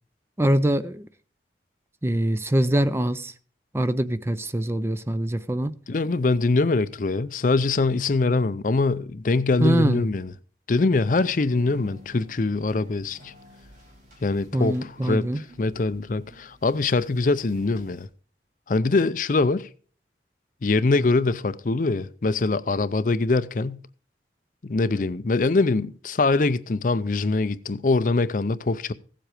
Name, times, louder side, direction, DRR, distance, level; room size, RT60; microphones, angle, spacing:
voice 1, 0.4-1.1 2.0-3.3 3.7-5.7 9.6-10.0 14.5-15.4, right 1 dB, 15° right, 0.4 m, -23 dB
voice 2, 5.9-10.3 10.7-13.3 14.2-15.3 15.6-18.1 18.7-19.7 20.6-23.8 24.6-28.9, left 3 dB, 45° left, 0.5 m, -23 dB
sound 1, 11.5-18.1, equal, 45° right, 3.5 m, -51 dB
16.0 x 7.6 x 4.9 m
head